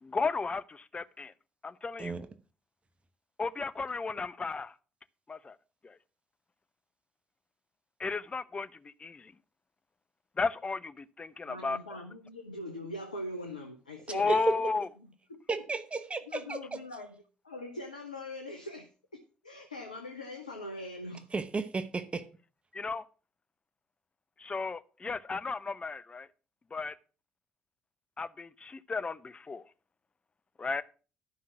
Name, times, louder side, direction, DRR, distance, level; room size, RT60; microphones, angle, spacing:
voice 1, 0.0-1.3 1.6-2.1 3.4-4.7 5.3-5.6 5.8-6.0 8.0-9.3 10.4-11.8 14.1-14.9 22.7-23.0 24.4-26.3 26.7-27.0 28.2-29.7 30.6-30.8, left 4 dB, 30° left, 0.8 m, -34 dB
voice 2, 11.4-14.7 15.0-15.4 16.3-21.3, left 1 dB, 90° left, 0.8 m, -42 dB
voice 3, 15.5-16.6 21.3-22.2, right 3 dB, 30° right, 1.0 m, -33 dB
11.5 x 5.7 x 6.1 m
figure-of-eight pair, 45°, 4 cm